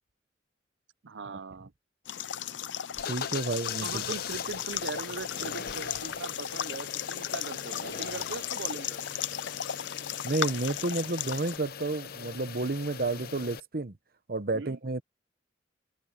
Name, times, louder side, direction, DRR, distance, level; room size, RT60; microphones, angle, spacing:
voice 1, 1.0-1.7 3.8-9.2 14.5-14.8, right 4 dB, 80° right, 0.6 m, -40 dB
sound 1, 2.1-11.6, left 10 dB, 80° left, 0.6 m, -36 dB
sound 2, 2.9-13.6, left 7 dB, 55° left, 0.8 m, -41 dB
voice 2, 3.1-4.0 10.2-13.9 14.3-15.0, right 2 dB, 50° right, 0.9 m, -31 dB
head